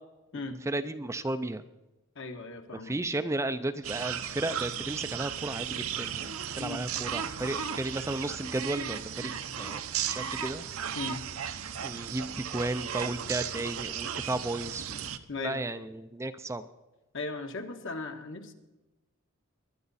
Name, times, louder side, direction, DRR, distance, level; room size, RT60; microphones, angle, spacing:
voice 1, 0.7-1.6 2.8-9.8 10.1-10.6 11.8-15.1 15.4-16.7, right 2 dB, 15° right, 10 dB, 0.4 m, -34 dB
voice 2, 2.1-3.0 6.6-6.8 10.9-11.2 15.3-15.6 17.1-18.5, left 3 dB, 60° left, 5 dB, 1.4 m, -37 dB
sound 1, 3.8-15.2, right 8 dB, 70° right, 0.8 m, -35 dB
21.0 x 10.5 x 4.2 m, 1.1 s
head